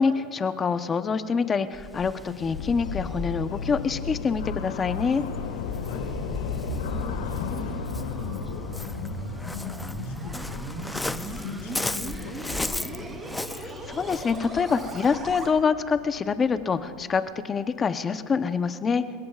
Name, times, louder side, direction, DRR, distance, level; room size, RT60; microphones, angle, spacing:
voice 1, 0.0-5.2 13.5-19.0, left 5 dB, 20° left, 10 dB, 0.8 m, -26 dB
Waves surf, 1.7-15.6, left 2 dB, 5° left, 0.4 m, -37 dB
sound 1, 2.4-17.3, left 6 dB, 90° left, 1.7 m, -37 dB
voice 2, 5.5-6.1 6.7-13.0, left 6 dB, 75° left, 1 dB, 4.7 m, -39 dB
sound 2, 5.5-15.5, right 2 dB, 20° right, 3.1 m, -38 dB
28.5 x 17.5 x 2.4 m, 2.1 s
supercardioid pair, 130°, 0 cm